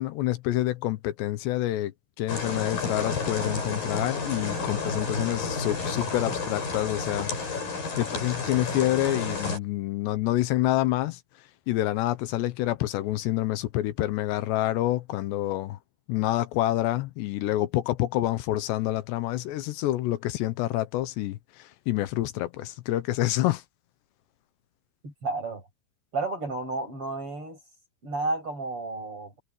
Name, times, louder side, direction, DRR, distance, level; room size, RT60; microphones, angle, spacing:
voice 1, 0.0-1.9 2.2-11.2 11.7-15.8 16.1-23.6, left 15 dB, 85° left, 3.2 m, -27 dB
sound 1, 2.3-9.6, left 4 dB, 55° left, 9.2 m, -31 dB
voice 2, 25.0-25.6 26.1-27.6 28.0-29.4, right 3 dB, 30° right, 7.5 m, -32 dB
omnidirectional pair, 4.9 m